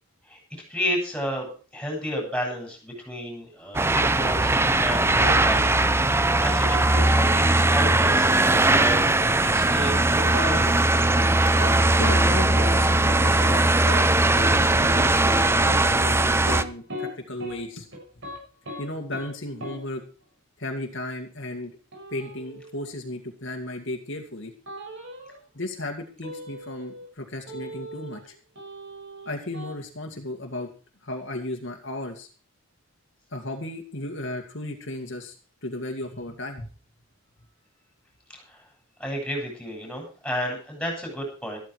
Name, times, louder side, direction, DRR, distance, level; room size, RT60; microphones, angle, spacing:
voice 1, 0.7-5.7 6.1-9.1 9.4-10.7 38.3-38.6 39.0-41.6, equal, 5° left, 0 dB, 7.7 m, -32 dB
sound 1, 3.7-16.6, right 2 dB, 10° right, 0.6 m, -20 dB
sound 2, 10.3-10.5 10.8-11.3 11.6-11.8 12.0-12.2 12.6-12.7 13.0-13.6 13.9-14.0 14.3-14.5 14.8-15.0 15.3-15.4 15.9-17.1 17.4-17.6 17.9-18.4 18.6-18.8 19.1-19.3 19.6-19.8 21.9-22.7 24.7-25.4 26.2-27.1 27.5-28.3 28.5-29.7, left 1 dB, 60° right, 6.8 m, -36 dB
voice 2, 12.0-13.7 14.3-17.9 18.8-20.0 20.6-21.8 22.1-24.5 25.5-28.3 29.3-30.7 31.0-32.3 33.3-35.3 35.6-36.7, left 1 dB, 60° left, 2 dB, 2.2 m, -35 dB
14.0 x 13.0 x 4.8 m, 0.38 s
head